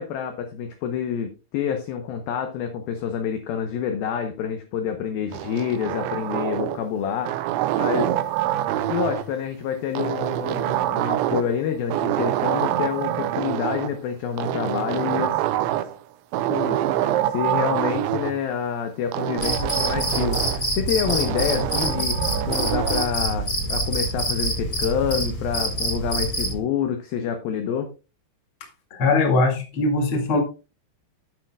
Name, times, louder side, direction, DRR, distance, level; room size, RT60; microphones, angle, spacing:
voice 1, 0.0-7.3 7.8-8.1 8.9-15.4 16.5-27.9, left 8 dB, 75° left, 6 dB, 2.2 m, -28 dB
sound 1, 5.3-6.9 7.2-9.3 10.0-11.6 11.9-13.9 14.4-16.0 16.3-18.3 19.1-20.7 21.1-23.1, right 13 dB, 85° right, 3.0 m, -25 dB
Cricket, 19.4-26.6, right 1 dB, 20° left, 3.5 m, -26 dB
voice 2, 28.9-30.4, left 3 dB, 40° left, 2 dB, 2.1 m, -21 dB
12.5 x 8.8 x 2.3 m, 0.31 s
omnidirectional pair, 5.3 m